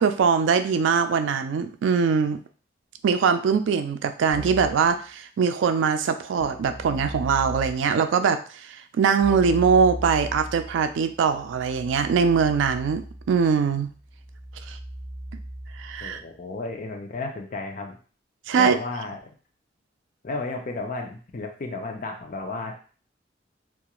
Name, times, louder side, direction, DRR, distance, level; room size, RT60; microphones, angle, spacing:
voice 1, 0.0-2.4 3.0-13.9 14.7-14.8 15.8-16.2 18.5-18.7, right 6 dB, 90° right, 9 dB, 0.3 m, -22 dB
Keyboard (musical), 4.3-4.9 6.4-8.0 9.2-16.2, right 1 dB, ahead, 0.6 m, -38 dB
voice 2, 16.0-18.0 18.5-19.2 20.2-22.8, left 3 dB, 45° left, 3 dB, 0.5 m, -33 dB
2.4 x 2.3 x 2.9 m, 0.40 s
head